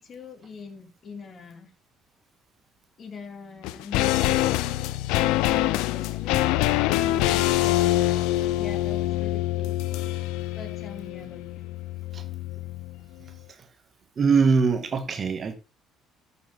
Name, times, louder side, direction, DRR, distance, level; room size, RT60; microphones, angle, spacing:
voice 1, 0.0-1.7 3.0-4.5 5.4-6.5 8.5-10.1 10.5-11.7, left 5 dB, 45° left, 3.0 m, -43 dB
sound 1, 3.6-13.0 13.3-13.4, left 15 dB, 75° left, 0.5 m, -25 dB
voice 2, 14.2-15.6, right 5 dB, 45° right, 1.7 m, -22 dB
14.5 x 6.7 x 3.6 m
hypercardioid pair, 55°, 0 cm